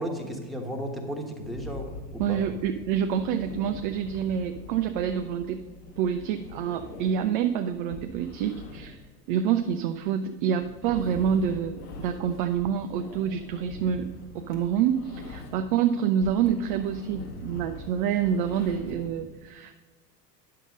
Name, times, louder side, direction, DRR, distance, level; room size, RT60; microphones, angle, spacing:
voice 1, 0.0-2.4, equal, ahead, 0 dB, 1.4 m, -34 dB
sound 1, 1.4-15.7 16.0-19.1, left 3 dB, 50° left, 2.0 m, -43 dB
voice 2, 2.2-5.6 6.0-9.0 9.3-14.1 14.3-19.7, right 8 dB, 35° right, 8 dB, 0.4 m, -27 dB
9.9 x 6.5 x 5.2 m, 1.3 s
figure-of-eight pair, 80°, 50 cm